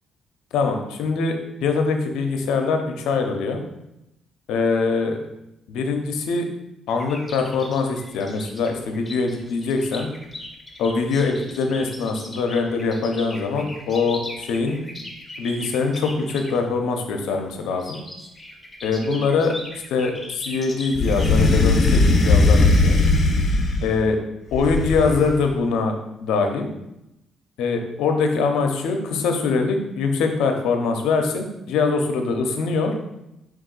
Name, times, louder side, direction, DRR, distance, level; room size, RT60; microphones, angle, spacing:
voice 1, 0.5-3.6 4.5-5.2 5.7-6.5 6.9-10.1 10.8-14.8 15.4-18.0 18.8-19.5 19.9-23.0 23.8-24.2 24.5-25.9 26.2-26.7 27.6-32.9, left 4 dB, 90° left, 4 dB, 0.6 m, -23 dB
sound 1, 6.9-16.6 17.7-22.2, left 1 dB, 15° left, 0.8 m, -39 dB
sound 2, 20.9-24.0 24.5-25.4, left 3 dB, 50° left, 0.6 m, -18 dB
4.8 x 2.7 x 3.9 m, 0.88 s
cardioid pair, 90°, 0 cm